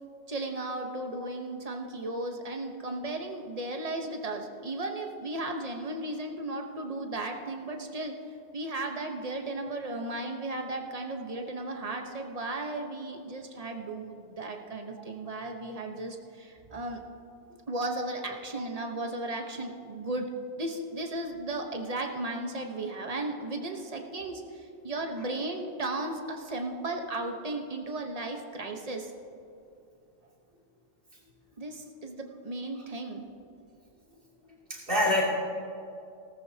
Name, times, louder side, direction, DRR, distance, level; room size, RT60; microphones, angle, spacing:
voice 1, 0.3-8.1 8.5-17.0 17.7-20.3 20.6-29.1 31.6-33.2, right 2 dB, 35° right, 3 dB, 1.1 m, -35 dB
voice 2, 34.7-35.2, left 1 dB, 50° right, -5 dB, 3.0 m, -27 dB
18.0 x 14.0 x 2.8 m, 2.5 s
omnidirectional pair, 1.2 m